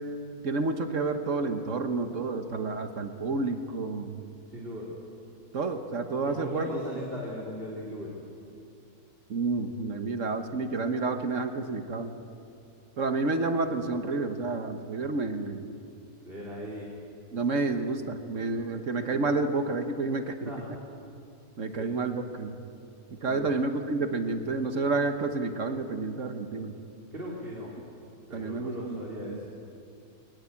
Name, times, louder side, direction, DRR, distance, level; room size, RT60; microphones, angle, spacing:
voice 1, 0.4-4.2 5.5-6.8 9.3-12.1 13.0-15.7 17.3-20.8 21.6-22.5 23.1-26.7 28.3-29.4, right 3 dB, 55° right, 7 dB, 1.5 m, -30 dB
voice 2, 4.5-4.9 6.2-8.1 16.2-16.9 20.5-20.6 21.8-21.9 23.2-23.5 27.1-27.8 28.3-29.4, equal, 35° right, -4 dB, 3.5 m, -38 dB
22.0 x 19.5 x 8.5 m, 2.6 s
omnidirectional pair, 1.6 m